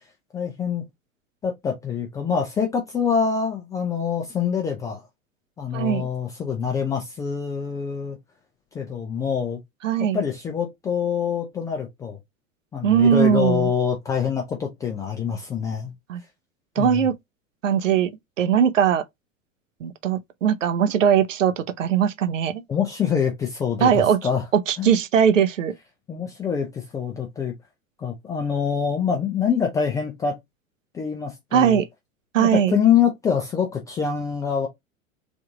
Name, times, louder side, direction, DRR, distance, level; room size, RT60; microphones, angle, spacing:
voice 1, 0.3-0.8 1.4-5.0 5.6-8.2 8.7-9.6 10.0-12.2 12.7-15.9 16.8-17.1 22.7-24.5 24.8-24.9 26.1-27.5 28.0-30.4 30.9-31.8 32.4-34.7, left 7 dB, 10° left, 0.4 m, -25 dB
voice 2, 5.7-6.1 9.8-10.2 12.8-13.7 16.1-16.2 16.8-17.1 17.6-18.1 18.4-19.0 19.8-22.6 23.8-24.2 24.5-25.7 31.5-31.9 32.3-32.8, right 8 dB, 65° right, 0.7 m, -20 dB
3.4 x 2.7 x 3.5 m
figure-of-eight pair, 95°, 42 cm